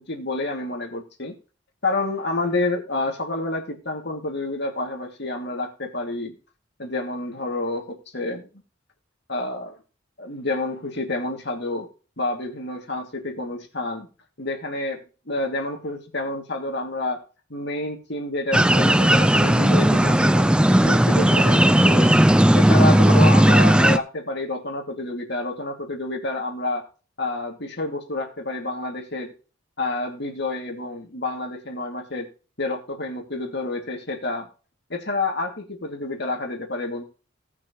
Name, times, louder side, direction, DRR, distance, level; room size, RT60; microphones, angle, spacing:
voice 1, 0.0-1.3 1.8-6.3 6.8-8.4 9.3-9.8 10.2-11.9 12.2-14.1 14.4-15.0 15.3-17.2 17.5-20.5 20.8-22.2 22.5-26.8 27.2-29.3 29.8-32.3 32.6-34.5 34.9-37.0, left 2 dB, 55° left, 3 dB, 2.5 m, -29 dB
sound 1, 18.5-24.0, right 1 dB, 5° right, 0.4 m, -16 dB
18.0 x 6.2 x 3.1 m, 0.34 s
head